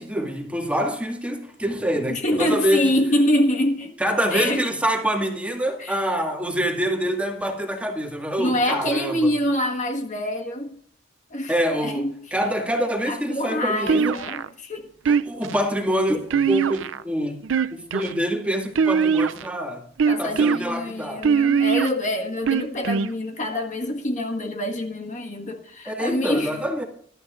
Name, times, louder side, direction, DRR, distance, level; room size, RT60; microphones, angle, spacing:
voice 1, 0.0-2.9 4.0-9.3 11.5-12.1 12.3-14.2 15.1-17.4 17.7-19.8 20.2-21.3 25.9-26.8, equal, 5° right, 2.0 m, -25 dB
voice 2, 2.1-3.9 4.3-4.7 5.8-6.1 8.4-10.8 11.3-12.3 13.0-14.9 20.1-26.7, left 1 dB, 40° left, 1.6 m, -25 dB
sound 1, 13.9-14.5 15.1-15.6 16.3-17.0 17.4-18.1 18.8-19.5 20.0-20.6 21.2-21.9 22.5-23.1, right 6 dB, 75° right, 0.5 m, -21 dB
21.0 x 12.5 x 2.5 m
head